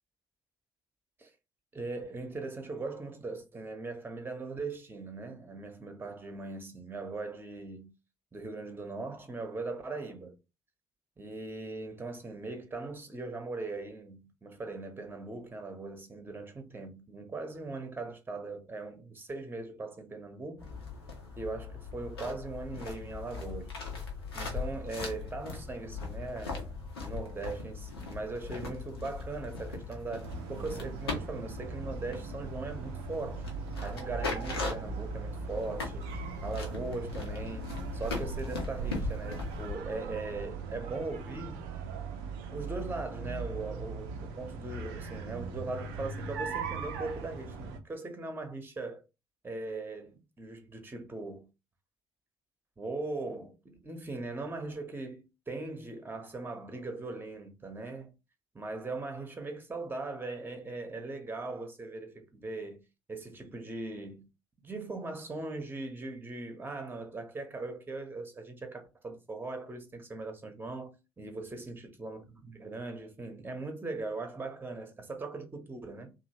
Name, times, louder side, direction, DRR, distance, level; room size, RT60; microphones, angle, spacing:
voice 1, 1.7-7.9 8.3-10.4 11.2-20.7 21.4-23.8 24.3-33.4 33.8-41.7 42.5-49.0 49.4-51.5 52.8-58.1 58.5-62.8 63.1-64.3 64.6-76.1, right 3 dB, 15° right, 0.8 m, -40 dB
sound 1, 20.6-39.8, left 4 dB, 80° left, 0.7 m, -39 dB
sound 2, 30.2-47.8, right 5 dB, 65° right, 0.5 m, -39 dB
2.9 x 2.6 x 2.7 m
figure-of-eight pair, 50°, 13 cm